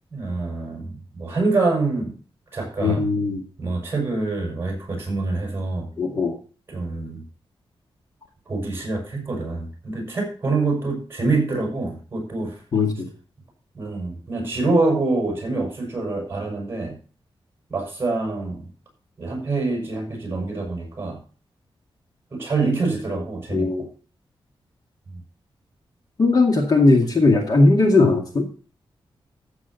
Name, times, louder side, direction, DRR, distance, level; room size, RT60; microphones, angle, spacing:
voice 1, 0.1-2.1 2.5-3.1 3.6-5.9 6.7-7.2 8.5-12.5 13.7-17.0 17.7-18.7 19.2-21.2 22.3-23.9 25.1-25.2, right 3 dB, 25° right, 0 dB, 6.2 m, -25 dB
voice 2, 2.8-3.4 6.0-6.3 12.7-13.1 23.5-23.9 26.2-28.5, left 3 dB, 40° left, 2 dB, 2.1 m, -18 dB
14.0 x 8.2 x 4.1 m, 0.37 s
wide cardioid pair, 170°, 10 cm